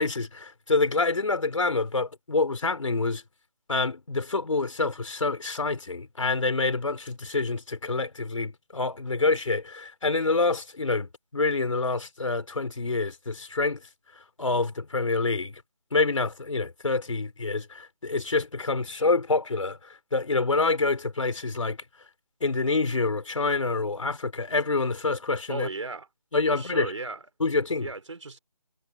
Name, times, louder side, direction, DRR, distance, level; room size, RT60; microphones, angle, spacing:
voice 1, 0.0-3.2 3.7-13.8 14.4-15.6 15.9-21.8 22.4-25.7 26.3-26.9 27.4-27.9, left 3 dB, 60° left, 3.4 m, -27 dB
voice 2, 25.5-26.1 26.5-27.2 27.8-28.4, right 3 dB, 55° right, 3.5 m, -35 dB
figure-of-eight pair, 175°, 18 cm